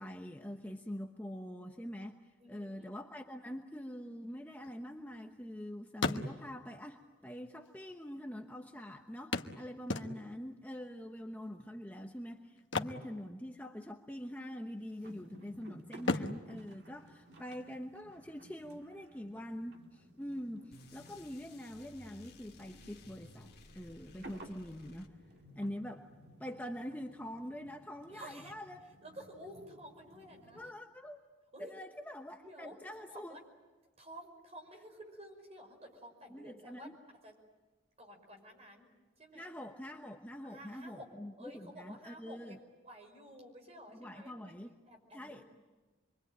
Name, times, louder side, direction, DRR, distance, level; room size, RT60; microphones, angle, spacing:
voice 1, 0.0-2.2 2.5-23.5 23.7-25.1 25.6-26.1 26.4-28.8 30.5-31.2 31.6-33.4 36.3-37.0 39.3-42.6 43.9-44.7 45.1-45.4, equal, 10° left, 3 dB, 1.0 m, -44 dB
voice 2, 2.4-2.9 28.1-28.5 29.0-30.7 31.5-31.7 32.4-33.4 34.0-36.9 37.2-37.3 38.0-38.9 39.2-39.5 40.4-41.1 41.4-44.5 44.9-45.5, equal, 35° right, 2 dB, 5.6 m, -52 dB
sound 1, 4.3-5.6 5.9-6.7 7.7-7.8 8.0-8.1 9.3-10.5 12.6-13.9 14.1-14.4 14.9-15.5 16.0-17.7 19.7-19.8 20.3-20.4, left 3 dB, 80° left, 1.2 m, -37 dB
sound 2, 15.0-30.7, right 1 dB, 60° right, 1.9 m, -57 dB
sound 3, 20.7-25.5, left 2 dB, 55° left, 2.2 m, -57 dB
27.5 x 23.5 x 9.0 m, 1.2 s
head